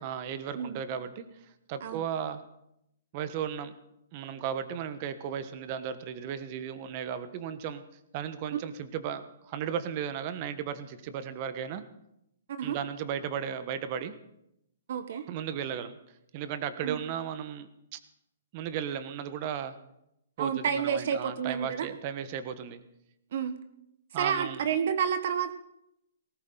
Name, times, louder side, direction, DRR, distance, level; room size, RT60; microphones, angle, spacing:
voice 1, 0.0-1.3 1.7-2.4 3.1-3.7 4.1-7.8 8.1-11.8 12.6-14.1 15.3-16.0 16.3-18.0 18.5-19.8 20.4-22.8 24.1-24.6, right 8 dB, 40° right, 11 dB, 1.3 m, -35 dB
voice 2, 14.9-15.2 16.8-17.0 20.4-21.9 23.3-23.6 24.2-25.5, right 7 dB, 60° right, 10 dB, 1.2 m, -30 dB
19.0 x 18.0 x 4.0 m, 0.81 s
hypercardioid pair, 130°, 0 cm